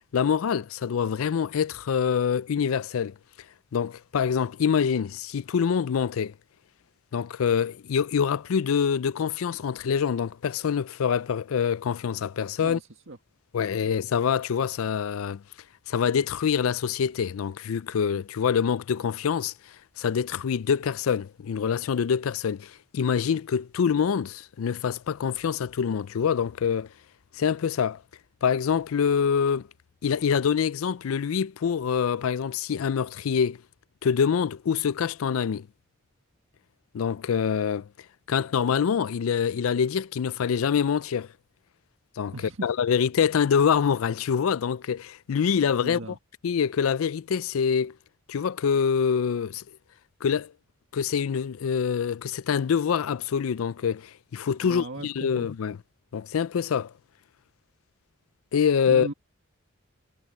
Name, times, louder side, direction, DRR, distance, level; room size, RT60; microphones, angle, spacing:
voice 1, 0.1-3.1 3.7-6.3 7.1-12.8 13.5-15.4 15.9-19.5 20.0-26.9 27.4-28.0 28.4-29.7 30.0-33.6 34.0-35.7 36.9-37.9 38.3-41.3 42.2-42.3 42.6-46.0 46.4-47.9 48.3-49.6 50.2-50.5 50.9-55.8 56.1-56.9 58.5-59.1, left 7 dB, 80° left, 0.4 m, -25 dB
voice 2, 12.6-13.2 13.8-13.9 42.3-42.7 45.8-46.2 54.6-55.5 58.9-59.1, right 2 dB, 65° right, 1.7 m, -37 dB
head